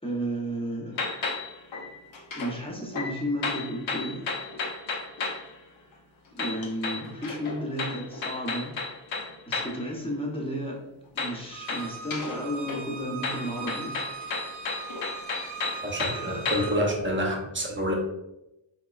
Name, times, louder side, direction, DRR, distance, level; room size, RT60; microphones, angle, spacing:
voice 1, 0.0-0.9 2.4-4.3 6.3-8.7 9.5-10.8 11.1-14.0 16.1-17.2, equal, 10° left, -3 dB, 0.8 m, -33 dB
sound 1, 1.0-2.6 2.9-5.5 6.4-9.8 11.2-12.4 12.7-16.8, left 4 dB, 80° left, 0.7 m, -33 dB
Bowed string instrument, 11.5-16.8, right 5 dB, 75° right, 0.9 m, -40 dB
voice 2, 15.8-17.9, equal, 25° right, 0 dB, 0.8 m, -28 dB
4.0 x 2.9 x 2.3 m, 0.91 s
wide cardioid pair, 125°, 45 cm